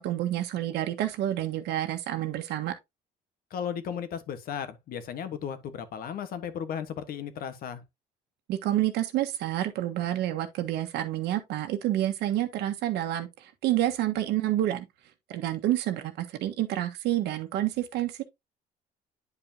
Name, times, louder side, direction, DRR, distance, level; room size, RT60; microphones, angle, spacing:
voice 1, 0.0-2.7 8.5-14.9 15.3-18.2, right 13 dB, 80° right, 1.3 m, -29 dB
voice 2, 3.5-7.8, left 8 dB, 60° left, 1.3 m, -35 dB
9.6 x 5.1 x 2.8 m
cardioid pair, 110°, 17 cm